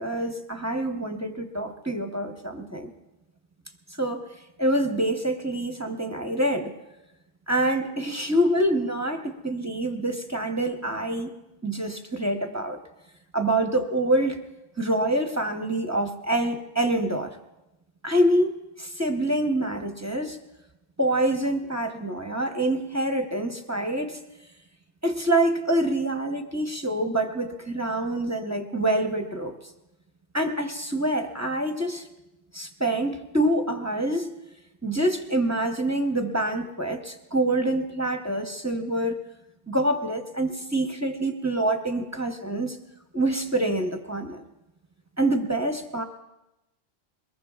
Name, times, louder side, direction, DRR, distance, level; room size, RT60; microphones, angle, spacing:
voice 1, 0.0-2.9 4.0-4.3 4.6-6.7 7.5-11.3 11.6-12.8 13.3-14.4 14.8-17.4 18.0-20.4 21.0-24.2 25.0-29.5 30.3-32.0 32.5-34.3 34.8-39.2 39.7-42.8 43.1-44.4 45.2-46.0, right 1 dB, 15° right, 4 dB, 0.8 m, -26 dB
23.0 x 20.5 x 2.4 m, 0.96 s
omnidirectional pair, 1.3 m